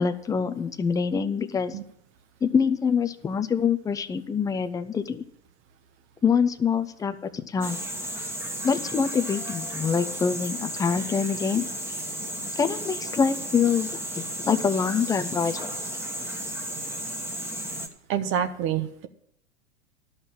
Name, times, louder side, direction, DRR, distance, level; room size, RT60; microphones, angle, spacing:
voice 1, 0.0-1.8 2.4-5.2 6.2-7.8 8.6-11.7 12.6-13.9 14.4-15.7, left 6 dB, 10° left, 11 dB, 0.5 m, -25 dB
sound 1, 7.6-17.9, right 1 dB, 5° right, 1.3 m, -34 dB
voice 2, 18.1-19.1, right 9 dB, 35° right, 10 dB, 1.1 m, -27 dB
12.0 x 5.6 x 8.6 m, 0.69 s
hypercardioid pair, 100°, 35 cm